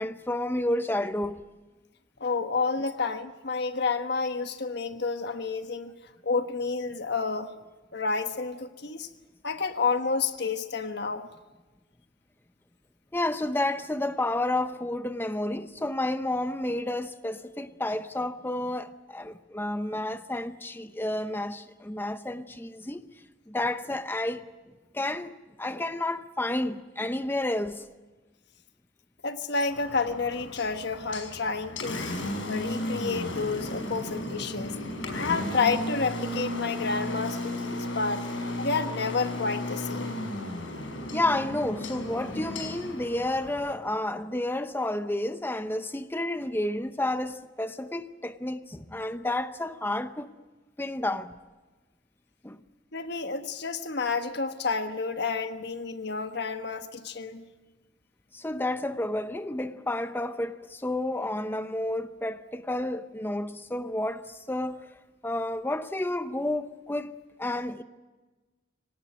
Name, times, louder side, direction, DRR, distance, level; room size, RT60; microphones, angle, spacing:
voice 1, 0.0-1.4 13.1-23.0 23.5-24.4 24.9-27.9 41.1-50.3 50.8-51.4 52.4-52.6 58.3-64.9 65.2-67.8, left 1 dB, 10° left, 0.7 m, -30 dB
voice 2, 2.2-5.9 6.2-7.5 7.9-9.1 9.4-11.3 29.2-32.1 32.5-34.8 35.2-38.2 38.6-40.2 52.9-57.4, left 4 dB, 60° left, 1.4 m, -30 dB
Engine, 29.7-43.7, left 1 dB, 85° left, 5.3 m, -34 dB
25.0 x 18.5 x 9.2 m
head